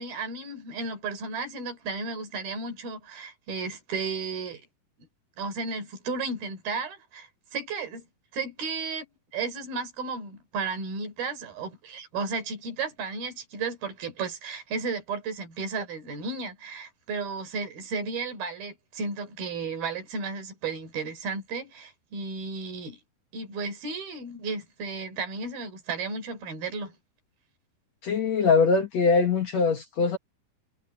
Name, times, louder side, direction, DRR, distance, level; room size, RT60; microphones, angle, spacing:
voice 1, 0.0-4.6 5.0-5.1 5.4-8.1 8.3-9.1 9.3-23.0 23.3-27.0, right 4 dB, 70° right, 5.4 m, -34 dB
voice 2, 28.0-30.2, left 4 dB, 55° left, 2.2 m, -22 dB
omnidirectional pair, 4.4 m